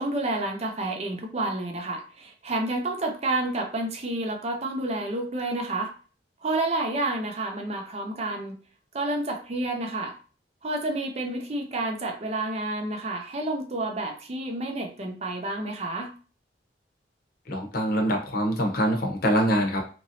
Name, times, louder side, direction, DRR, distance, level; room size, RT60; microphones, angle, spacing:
voice 1, 0.0-5.9 6.4-8.5 8.9-10.1 10.6-16.1, right 2 dB, 35° right, 3 dB, 0.5 m, -29 dB
voice 2, 17.5-19.8, equal, 55° left, 1 dB, 0.7 m, -24 dB
3.0 x 2.6 x 2.7 m, 0.38 s
head